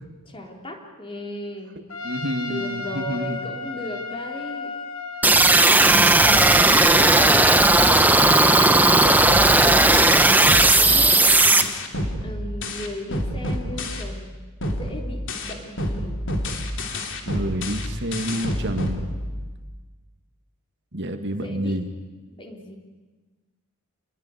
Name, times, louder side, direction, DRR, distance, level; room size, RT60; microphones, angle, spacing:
voice 1, 0.3-1.9 2.5-4.7 6.0-6.4 7.0-11.7 12.2-14.3 14.7-16.2 21.3-21.8 22.3-22.8, equal, 25° left, 2 dB, 3.6 m, -36 dB
Trumpet, 1.9-9.2, left 4 dB, 75° left, 2.8 m, -34 dB
voice 2, 2.0-3.5 5.8-7.3 17.2-19.0 20.9-21.9, equal, 55° right, 6 dB, 2.2 m, -29 dB
sound 1, 5.2-11.6, right 2 dB, 10° right, 1.1 m, -15 dB
sound 2, 9.3-14.3 14.6-19.6, left 1 dB, 60° left, 3.2 m, -29 dB
28.5 x 21.5 x 9.6 m, 1.3 s
head